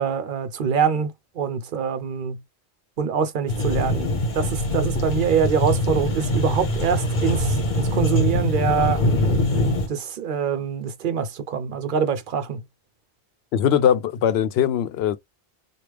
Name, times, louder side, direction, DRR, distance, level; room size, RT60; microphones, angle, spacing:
voice 1, 0.0-2.4 3.0-4.1 4.3-9.0 9.9-12.6, right 6 dB, 55° right, 0.8 m, -24 dB
sound 1, 3.5-9.9, left 1 dB, 50° left, 1.1 m, -23 dB
voice 2, 13.5-15.2, left 9 dB, 80° left, 0.8 m, -21 dB
3.3 x 2.4 x 3.0 m
omnidirectional pair, 1.1 m